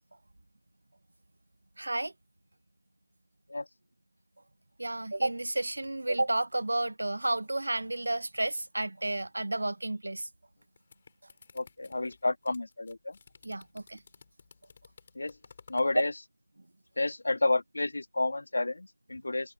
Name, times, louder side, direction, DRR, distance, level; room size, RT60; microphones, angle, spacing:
voice 1, 1.8-2.1 4.8-10.3 13.4-14.0, right 2 dB, 60° right, 1.1 m, -31 dB
sound 1, 10.6-16.0, left 5 dB, 25° left, 5.6 m, -56 dB
voice 2, 11.5-13.2 15.1-15.4 15.7-16.1 17.0-19.5, left 2 dB, 55° left, 2.3 m, -30 dB
open air
figure-of-eight pair, 170°, 0 cm